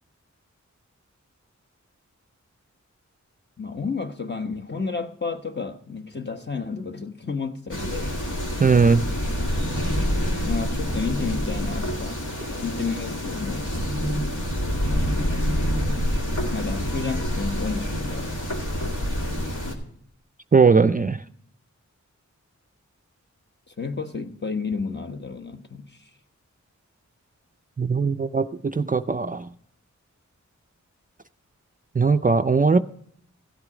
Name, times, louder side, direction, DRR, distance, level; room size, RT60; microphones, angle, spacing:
voice 1, 3.6-8.2 10.4-12.2 12.6-14.1 16.5-18.3 23.8-26.0, left 4 dB, 35° left, 1.0 m, -31 dB
sound 1, 7.7-19.7, equal, 75° left, 2.2 m, -27 dB
voice 2, 8.6-9.0 20.5-21.2 27.8-29.5 32.0-32.8, right 4 dB, 30° right, 0.4 m, -19 dB
15.5 x 8.1 x 4.9 m
wide cardioid pair, 75°, 30 cm